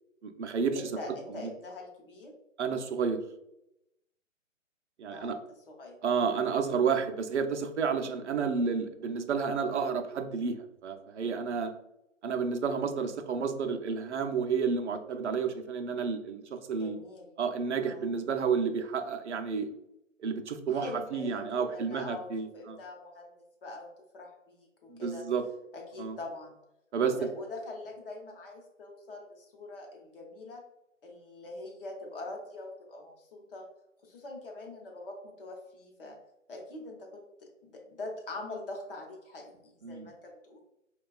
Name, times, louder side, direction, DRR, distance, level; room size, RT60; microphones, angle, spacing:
voice 1, 0.2-0.8 2.6-3.2 5.0-5.4 6.0-11.7 12.2-17.0 17.4-19.7 20.2-22.8 24.9-25.4 26.0-26.2 26.9-27.1 39.8-40.1, right 5 dB, 60° right, 6 dB, 0.5 m, -31 dB
voice 2, 0.7-2.3 5.1-5.4 5.7-6.0 6.2-6.4 16.8-17.3 17.8-18.1 20.7-22.3 22.5-23.3 23.6-25.2 25.7-26.6 27.0-30.6 31.0-33.7 34.0-36.2 36.5-40.6, left 2 dB, 45° left, 1 dB, 0.8 m, -43 dB
4.5 x 2.3 x 2.2 m, 0.86 s
figure-of-eight pair, 150°, 39 cm